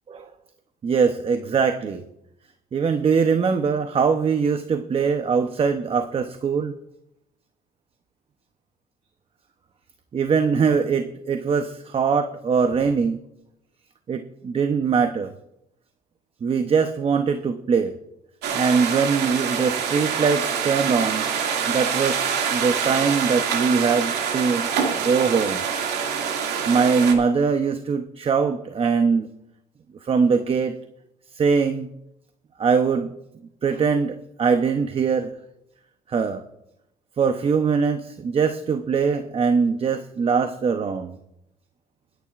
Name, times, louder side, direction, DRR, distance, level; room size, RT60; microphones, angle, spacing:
voice 1, 0.8-2.0 2.7-6.7 10.1-13.2 14.1-15.3 16.4-18.0 18.5-21.2 21.7-24.7 25.0-25.6 26.7-29.3 30.0-30.8 31.3-31.9 32.6-33.1 33.6-35.3 36.1-36.4 37.2-41.2, right 5 dB, 35° right, 8 dB, 0.8 m, -22 dB
sound 1, 18.4-27.1, right 7 dB, 85° right, 2.2 m, -25 dB
22.5 x 10.0 x 2.5 m, 0.81 s
cardioid pair, 110°, 17 cm